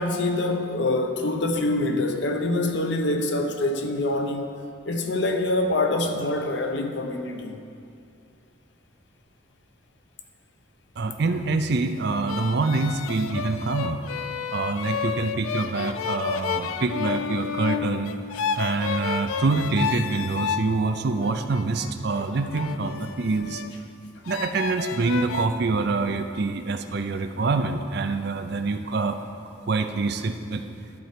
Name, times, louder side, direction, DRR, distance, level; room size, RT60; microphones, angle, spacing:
voice 1, 0.0-4.5 4.9-7.6 22.2-22.3 22.8-22.9, left 2 dB, 60° left, 0.7 m, -25 dB
voice 2, 11.0-14.0 14.5-18.1 18.6-23.6 24.3-29.2 29.7-30.6, right 3 dB, 50° right, 0.5 m, -26 dB
sound 1, 12.3-20.7 21.2-23.7 24.2-25.5, left 7 dB, 85° left, 0.4 m, -31 dB
12.0 x 4.4 x 6.7 m
head